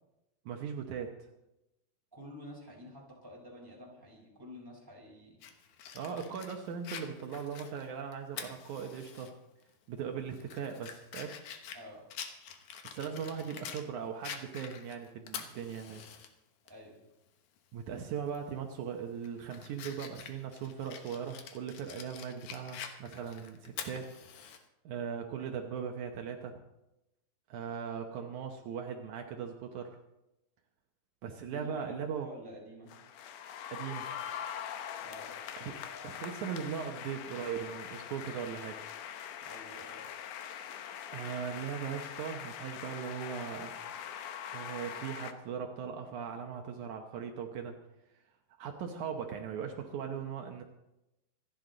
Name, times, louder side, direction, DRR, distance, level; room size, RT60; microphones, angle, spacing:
voice 1, 0.5-1.1 5.9-9.3 9.9-11.3 12.8-16.0 17.7-24.1 24.9-26.6 27.5-30.0 31.2-32.3 33.7-34.1 35.6-35.7 36.0-38.8 41.1-43.7 44.5-47.8 48.6-50.6, right 7 dB, 85° right, 3 dB, 1.7 m, -39 dB
voice 2, 2.1-5.4 11.7-12.0 16.7-17.0 31.5-33.0 35.0-35.4 39.4-40.0, equal, 5° right, -2 dB, 4.0 m, -49 dB
Fire, 5.4-9.3 9.7-9.8 10.3-13.8 14.2-16.3 16.7-16.8 18.3-18.5 19.0-24.6, left 7 dB, 65° left, 2.0 m, -46 dB
sound 1, 32.9-45.3, left 9 dB, 80° left, 1.9 m, -43 dB
26.5 x 10.5 x 4.0 m, 0.93 s
omnidirectional pair, 5.0 m